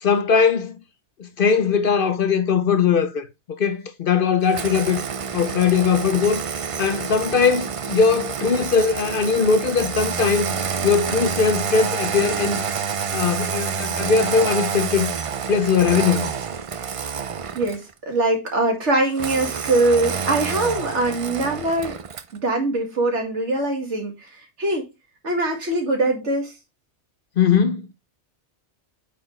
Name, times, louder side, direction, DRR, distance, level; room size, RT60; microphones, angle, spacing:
voice 1, 0.0-0.8 1.2-3.3 3.6-5.0 5.3-6.4 6.8-10.6 10.8-12.6 13.1-15.1 15.5-16.3 27.4-27.9, left 6 dB, 55° left, 0.8 m, -20 dB
Engine starting, 4.5-17.9 19.2-22.4, right 6 dB, 55° right, 0.3 m, -28 dB
voice 2, 17.5-22.0 22.3-24.9 25.2-26.5, right 2 dB, 80° right, 2.3 m, -22 dB
8.5 x 4.1 x 3.2 m
omnidirectional pair, 1.2 m